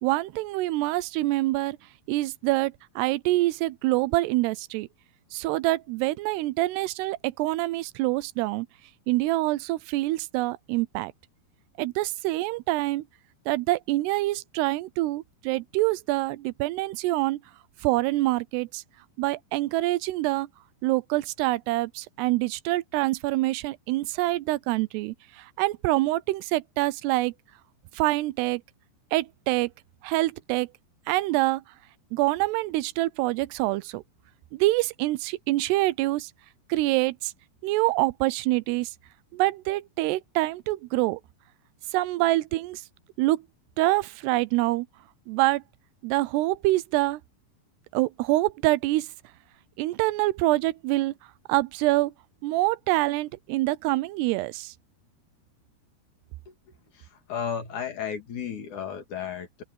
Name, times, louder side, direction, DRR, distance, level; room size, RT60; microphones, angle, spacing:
voice 1, 0.0-1.8 2.1-4.9 5.3-8.7 9.1-11.1 11.8-13.0 13.5-17.4 17.8-18.8 19.2-20.5 20.8-27.3 28.0-28.6 29.1-29.7 30.0-30.7 31.1-31.6 32.1-34.0 34.5-36.3 36.7-37.3 37.6-38.9 39.3-41.2 41.9-42.8 43.2-43.4 43.8-44.9 45.3-45.6 46.0-47.2 47.9-49.1 49.8-51.1 51.5-52.1 52.4-54.7, right 18 dB, 85° right, 2.7 m, -25 dB
voice 2, 56.9-59.6, left 7 dB, 50° left, 3.5 m, -34 dB
omnidirectional pair, 4.7 m